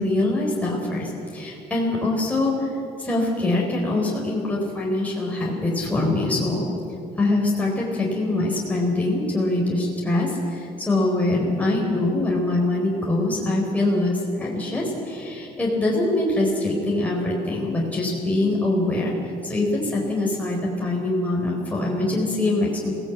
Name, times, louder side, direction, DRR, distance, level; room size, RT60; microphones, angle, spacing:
voice 1, 0.0-2.7 3.0-6.6 7.2-19.1 19.4-22.9, left 2 dB, 10° left, -3 dB, 4.3 m, -23 dB
22.0 x 17.5 x 8.3 m, 2.6 s
cardioid pair, 110°, 17 cm